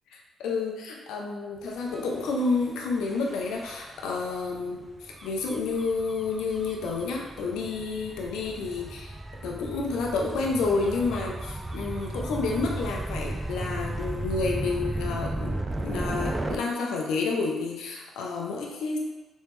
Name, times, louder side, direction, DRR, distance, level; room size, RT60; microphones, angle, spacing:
voice 1, 0.1-4.9 5.2-9.2 9.4-19.0, left 4 dB, 85° left, -1 dB, 0.5 m, -30 dB
Gull seagull / Waves surf / Siren, 1.8-16.6, right 1 dB, 15° right, 0.3 m, -35 dB
3.3 x 3.1 x 3.1 m, 1.2 s
cardioid pair, 90°, 0 cm